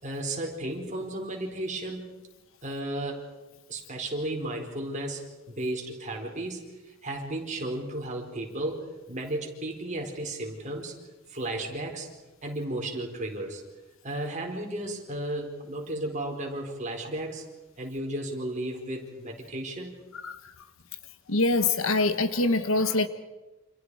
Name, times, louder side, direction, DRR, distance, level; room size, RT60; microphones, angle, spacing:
voice 1, 0.0-2.1 2.6-3.3 3.7-10.9 11.3-12.1 12.4-13.6 14.0-17.5 17.8-20.0, right 1 dB, 35° right, 1 dB, 4.6 m, -34 dB
voice 2, 21.3-23.1, left 2 dB, 70° left, 11 dB, 1.4 m, -24 dB
29.0 x 28.0 x 5.0 m, 1.1 s
head